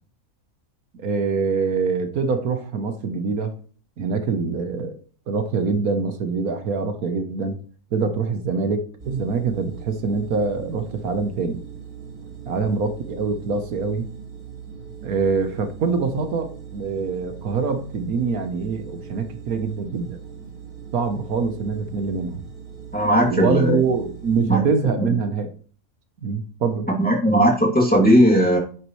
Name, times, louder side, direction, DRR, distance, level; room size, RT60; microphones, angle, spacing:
voice 1, 1.0-3.5 4.0-5.0 5.3-7.6 7.9-11.6 12.4-14.1 15.0-20.2 20.9-22.4 23.2-25.5 26.2-26.9, right 4 dB, 75° right, 8 dB, 1.5 m, -24 dB
sound 1, 9.0-24.5, right 7 dB, 60° right, 2.6 m, -40 dB
voice 2, 22.9-23.8 24.4-24.6 27.0-28.6, equal, 5° left, -3 dB, 2.6 m, -17 dB
9.9 x 8.0 x 3.2 m, 0.42 s
omnidirectional pair, 1.6 m